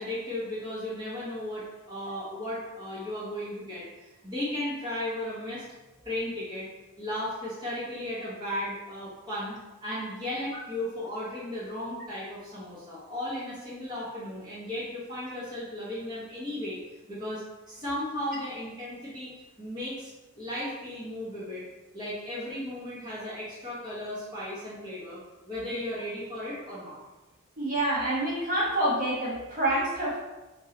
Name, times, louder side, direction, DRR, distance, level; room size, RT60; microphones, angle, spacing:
voice 1, 0.0-5.6 6.0-6.7 7.0-9.5 9.8-16.8 17.1-19.3 19.6-21.6 21.9-27.0, left 1 dB, 20° right, -9 dB, 1.1 m, -35 dB
voice 2, 27.6-30.2, right 1 dB, 40° right, -6 dB, 1.3 m, -27 dB
3.6 x 3.3 x 3.8 m, 1.1 s
head